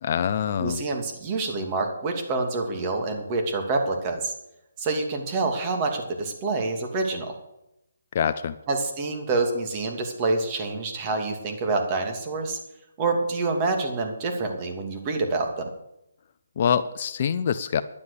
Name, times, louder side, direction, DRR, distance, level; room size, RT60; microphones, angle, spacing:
voice 1, 0.0-0.8 8.1-8.6 16.6-17.8, left 8 dB, 45° left, 12 dB, 0.7 m, -25 dB
voice 2, 0.6-4.3 4.8-7.4 8.7-12.6 13.0-15.7, right 3 dB, 30° right, 3 dB, 2.7 m, -27 dB
11.5 x 10.5 x 6.9 m, 0.86 s
hypercardioid pair, 150°, 0 cm